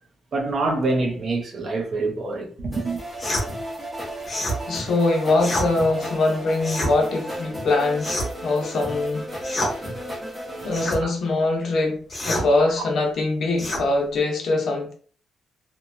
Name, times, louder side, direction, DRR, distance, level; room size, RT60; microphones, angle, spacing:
voice 1, 0.3-3.0 10.6-10.7 11.0-11.1, right 3 dB, 45° right, 0.5 m, -26 dB
sound 1, 2.7-10.8, equal, 5° right, 0.9 m, -34 dB
sound 2, 3.2-3.5 4.2-4.6 5.4-5.7 6.6-6.9 8.0-8.4 9.4-9.7 10.7-11.0 12.1-12.5 13.6-13.8, equal, 30° left, 0.9 m, -27 dB
voice 2, 4.7-8.2 8.4-9.9 10.6-14.9, left 2 dB, 60° left, 0.7 m, -23 dB
2.9 x 2.1 x 2.5 m
wide cardioid pair, 175°, 0 cm